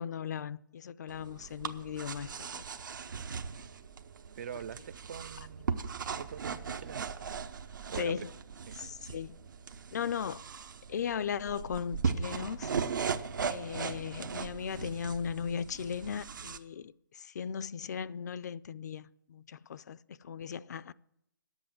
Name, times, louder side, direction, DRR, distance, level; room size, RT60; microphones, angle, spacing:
voice 1, 0.0-2.6 8.0-8.3 8.7-9.4 9.9-10.4 10.9-12.7 13.5-20.9, left 7 dB, 55° left, 0.4 m, -37 dB
sound 1, 1.1-16.6, right 6 dB, 65° right, 0.9 m, -38 dB
voice 2, 4.3-5.7 6.2-6.4 6.8-7.1 7.9-8.3 8.7-9.0, right 8 dB, 45° right, 0.4 m, -43 dB
11.0 x 8.0 x 8.9 m
hypercardioid pair, 150°, 11 cm